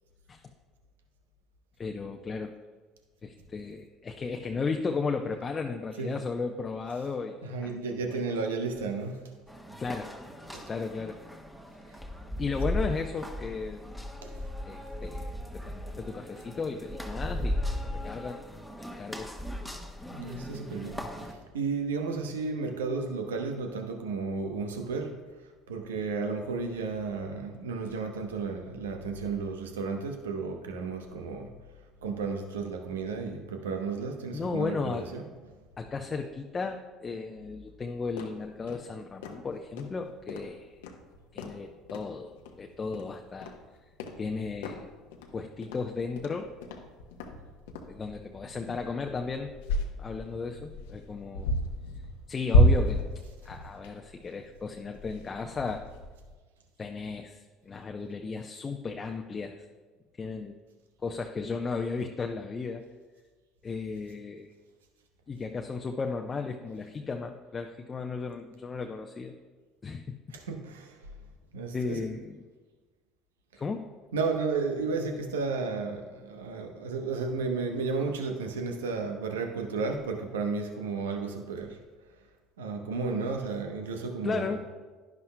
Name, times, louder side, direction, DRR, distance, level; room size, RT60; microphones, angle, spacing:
voice 1, 1.8-2.5 3.2-7.4 7.6-7.8 8.1-8.2 9.8-10.2 10.7-11.2 12.4-13.9 14.6-18.4 18.8-19.4 34.3-35.1 35.8-40.8 41.3-43.5 44.2-44.9 45.3-46.5 47.9-49.5 50.0-51.6 52.3-53.1 53.4-55.8 56.8-59.6 60.2-60.6 61.0-62.8 63.6-64.5 65.3-69.4 69.8-70.2 71.7-72.4 73.6-73.9 84.2-84.6, left 4 dB, 30° left, 3 dB, 0.7 m, -35 dB
voice 2, 7.4-9.2 10.4-10.7 14.2-14.4 20.1-31.5 32.0-35.6 35.8-35.9 70.3-71.0 71.5-72.1 74.1-81.8 82.6-84.6, right 4 dB, 85° right, 4 dB, 0.9 m, -33 dB
sound 1, 9.5-21.3, left 1 dB, ahead, 1.2 m, -37 dB
sound 2, 38.2-56.3, equal, 80° left, 0.9 m, -32 dB
11.0 x 10.5 x 2.2 m, 1.3 s
hypercardioid pair, 65°, 0 cm